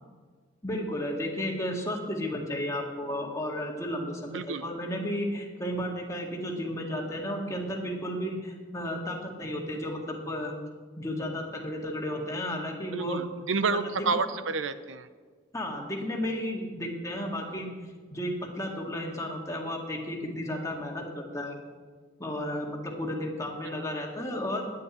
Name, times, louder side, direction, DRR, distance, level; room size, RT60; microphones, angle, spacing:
voice 1, 0.6-10.5 11.0-13.2 13.6-13.9 15.5-17.7 18.1-21.5 22.2-24.7, left 1 dB, 15° left, 0 dB, 2.0 m, -33 dB
voice 2, 4.3-4.6 12.9-15.1 23.6-23.9, right 4 dB, 85° right, 12 dB, 0.7 m, -30 dB
9.5 x 9.3 x 9.9 m, 1.5 s
head